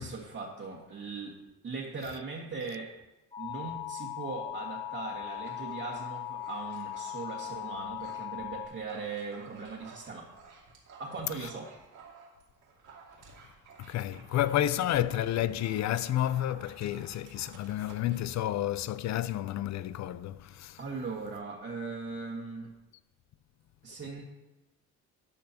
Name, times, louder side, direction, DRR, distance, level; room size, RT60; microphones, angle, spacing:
voice 1, 0.0-2.9 3.4-10.3 11.0-11.7 20.8-22.7 23.8-24.2, right 4 dB, 45° right, 1.7 m, -39 dB
sound 1, 3.3-8.7, left 11 dB, 20° left, 2.0 m, -39 dB
Dog, 5.3-8.3 8.6-18.3, right 5 dB, 75° right, 2.6 m, -53 dB
voice 2, 13.8-20.8, left 12 dB, 65° left, 0.5 m, -30 dB
12.5 x 8.3 x 2.9 m
cardioid pair, 90°, 30 cm